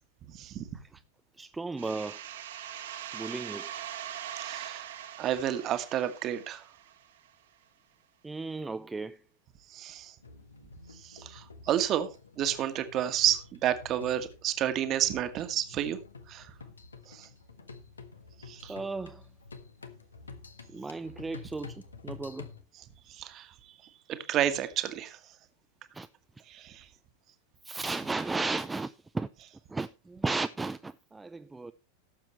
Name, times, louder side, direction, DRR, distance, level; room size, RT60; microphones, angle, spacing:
voice 1, 0.3-0.6 4.4-4.9 5.2-6.6 9.7-10.1 11.0-12.1 12.4-16.0 16.3-16.5 17.1-17.3 18.5-18.7 23.1-23.7 24.1-25.2 26.5-26.8, right 11 dB, 35° right, 1.5 m, -30 dB
voice 2, 1.4-2.3 3.1-3.9 8.2-9.2 18.7-19.3 20.7-22.5 25.9-26.1 27.6-29.3 29.7-31.7, right 3 dB, 10° right, 0.5 m, -35 dB
sound 1, 1.8-7.3, right 10 dB, 60° right, 1.5 m, -42 dB
sound 2, 10.2-22.6, left 4 dB, 75° left, 1.4 m, -49 dB
18.0 x 7.5 x 3.1 m
figure-of-eight pair, 90°, 0 cm